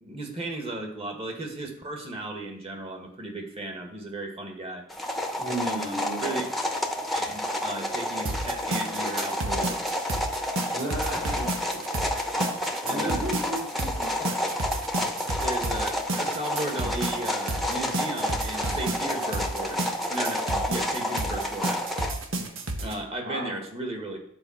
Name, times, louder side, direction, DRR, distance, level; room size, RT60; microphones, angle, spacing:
voice 1, 0.0-4.8 5.6-6.4 7.1-10.1 12.8-13.2 15.4-19.8 20.1-21.8 22.8-24.2, right 2 dB, 30° right, 2 dB, 1.8 m, -35 dB
sound 1, 4.9-22.1, left 1 dB, ahead, 0.9 m, -30 dB
voice 2, 5.4-6.4 10.7-12.1 12.3-12.5 12.8-14.4 23.2-23.6, right 1 dB, 55° right, -7 dB, 3.6 m, -34 dB
sound 2, 8.3-23.0, right 2 dB, 80° right, 1.3 m, -32 dB
10.5 x 4.8 x 7.2 m, 0.70 s
head